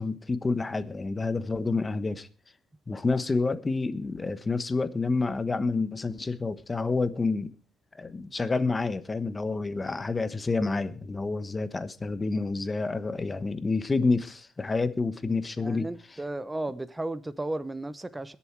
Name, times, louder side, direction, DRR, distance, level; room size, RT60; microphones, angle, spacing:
voice 1, 0.0-2.3 2.9-7.5 7.9-15.9, left 3 dB, 25° left, 1.1 m, -28 dB
voice 2, 15.6-18.4, right 2 dB, 15° right, 0.8 m, -34 dB
21.5 x 7.2 x 4.7 m
cardioid pair, 90°, 0 cm